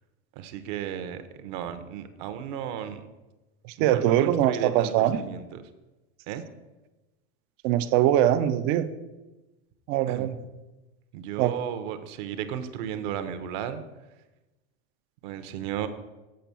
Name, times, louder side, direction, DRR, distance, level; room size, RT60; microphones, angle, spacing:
voice 1, 0.4-3.0 3.8-4.9 5.2-5.6 6.3-6.4 10.1-10.3 11.1-13.8 15.2-15.9, right 9 dB, 50° right, 9 dB, 0.7 m, -34 dB
voice 2, 3.8-5.2 7.6-8.9 9.9-10.3 11.4-11.5, right 12 dB, 30° right, 13 dB, 0.4 m, -22 dB
7.6 x 5.0 x 6.9 m, 1.1 s
supercardioid pair, 170°, 33 cm